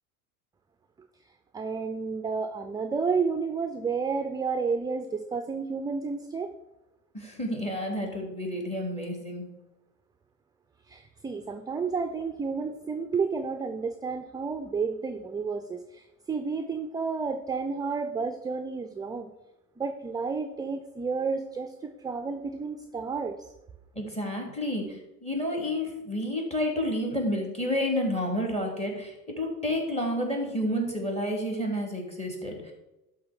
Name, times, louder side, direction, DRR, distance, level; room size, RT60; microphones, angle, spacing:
voice 1, 1.5-6.5 10.9-19.3 19.8-23.4, right 5 dB, 10° right, 7 dB, 0.4 m, -31 dB
voice 2, 7.1-9.5 23.9-32.7, equal, 15° left, 2 dB, 3.0 m, -30 dB
11.5 x 4.1 x 6.5 m, 0.95 s
hypercardioid pair, 75°, 46 cm